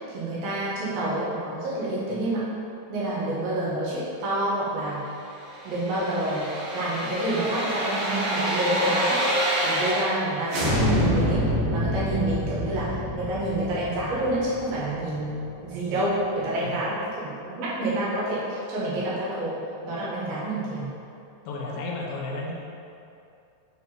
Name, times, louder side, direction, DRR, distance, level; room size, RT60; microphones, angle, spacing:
voice 1, 0.0-2.5 2.9-5.0 5.6-11.4 11.7-15.4 15.6-17.3 17.6-19.6 19.8-20.9, right 1 dB, 90° right, -8 dB, 3.7 m, -28 dB
sound 1, 5.5-10.2 10.5-15.4 15.7-15.8, equal, 75° right, 3.0 m, -27 dB
voice 2, 21.5-22.5, left 3 dB, 80° left, -3 dB, 2.8 m, -32 dB
8.7 x 4.1 x 4.5 m, 2.6 s
omnidirectional pair, 4.1 m